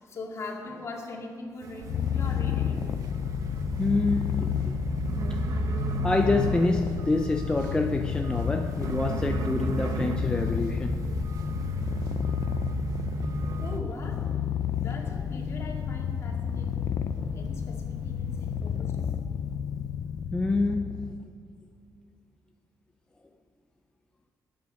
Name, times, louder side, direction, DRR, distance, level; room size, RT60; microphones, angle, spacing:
voice 1, 0.0-3.0 3.5-3.6 13.6-14.2 14.8-16.9 17.3-19.1, left 3 dB, 45° left, 0 dB, 2.2 m, -41 dB
sound 1, 1.6-13.8, right 4 dB, 55° right, 0.9 m, -35 dB
Purr, 1.8-21.2, left 9 dB, 70° left, 0.6 m, -31 dB
sound 2, 1.8-18.8, right 3 dB, 80° right, 2.0 m, -46 dB
voice 2, 3.8-4.8 5.3-5.4 6.0-11.0 17.3-17.4 20.3-21.1, left 2 dB, 15° left, 4 dB, 0.5 m, -27 dB
20.5 x 9.5 x 5.2 m, 2.3 s
cardioid pair, 160°, 7 cm